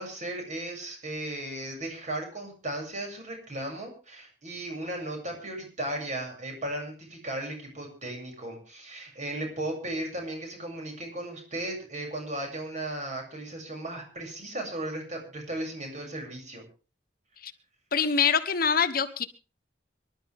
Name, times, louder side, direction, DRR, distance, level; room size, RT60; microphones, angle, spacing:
voice 1, 0.0-16.6, right 1 dB, 40° right, 2 dB, 7.3 m, -36 dB
voice 2, 17.9-19.3, left 6 dB, 55° left, 10 dB, 1.2 m, -24 dB
25.5 x 12.0 x 3.6 m, 0.35 s
head